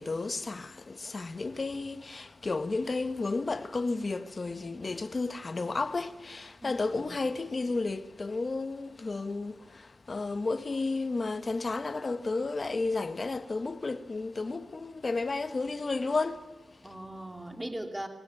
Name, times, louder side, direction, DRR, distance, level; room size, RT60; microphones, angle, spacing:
voice 1, 0.0-17.1, left 3 dB, 45° left, 1.5 m, -32 dB
voice 2, 6.6-7.2 16.8-18.1, right 1 dB, 15° right, 2.7 m, -39 dB
22.0 x 16.5 x 9.4 m
cardioid pair, 55°, 0 cm